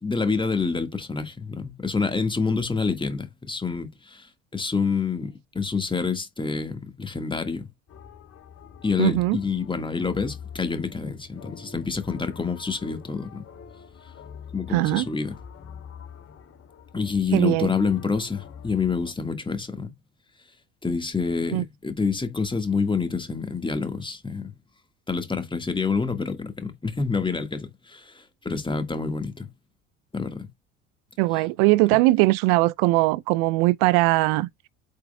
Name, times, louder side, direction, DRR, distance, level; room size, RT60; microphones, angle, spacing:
voice 1, 0.0-7.7 8.8-13.4 14.5-15.4 16.9-19.9 20.8-24.5 25.1-29.5 30.1-30.5, left 5 dB, 15° left, 1.8 m, -27 dB
sound 1, 7.9-19.1, left 6 dB, 40° left, 2.6 m, -44 dB
voice 2, 9.0-9.4 14.7-15.0 17.3-17.7 21.5-21.6 31.2-34.7, right 21 dB, 60° right, 0.5 m, -20 dB
8.1 x 6.4 x 2.3 m
hypercardioid pair, 65°, 36 cm